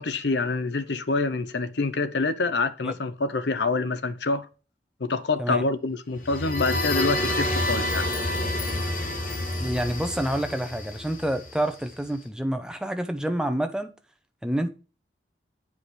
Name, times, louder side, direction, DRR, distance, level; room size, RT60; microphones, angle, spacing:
voice 1, 0.0-4.5 5.0-8.1, left 3 dB, 90° left, 0.8 m, -26 dB
sound 1, 6.2-11.9, left 1 dB, 50° left, 1.3 m, -28 dB
voice 2, 9.6-13.9 14.4-14.7, right 1 dB, 5° right, 0.7 m, -28 dB
8.5 x 4.8 x 4.2 m
head